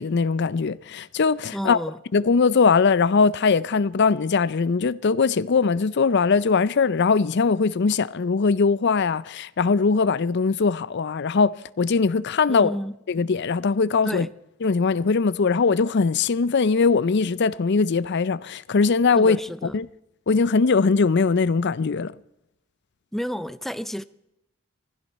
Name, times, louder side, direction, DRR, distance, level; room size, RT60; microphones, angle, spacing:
voice 1, 0.0-1.8 2.1-12.7 13.1-14.3 14.6-19.4 19.7-19.9 20.3-22.1, left 4 dB, 55° left, 0.5 m, -21 dB
voice 2, 1.5-2.0 12.5-13.0 14.0-14.3 19.1-19.8 23.1-24.0, equal, ahead, 0.5 m, -31 dB
19.5 x 15.5 x 4.2 m
head